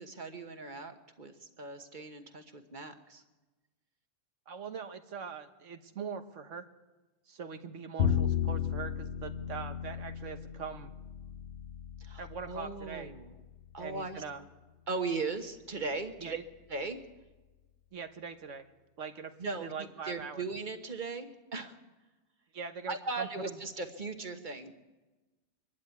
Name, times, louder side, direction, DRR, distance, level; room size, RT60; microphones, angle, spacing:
voice 1, 0.0-3.2 12.0-13.3 13.7-14.2 14.9-16.4 16.7-17.0 19.4-21.8 22.9-24.7, right 3 dB, 40° right, 7 dB, 1.4 m, -38 dB
voice 2, 4.5-6.7 7.3-10.9 12.2-13.1 13.8-14.4 16.2-16.4 17.9-18.6 19.0-19.3 19.6-20.4 22.5-23.6, right 6 dB, 80° right, 8 dB, 1.5 m, -42 dB
Bowed string instrument, 8.0-14.2, left 8 dB, 60° left, 1.2 m, -35 dB
23.5 x 11.5 x 9.4 m, 1.2 s
omnidirectional pair, 1.2 m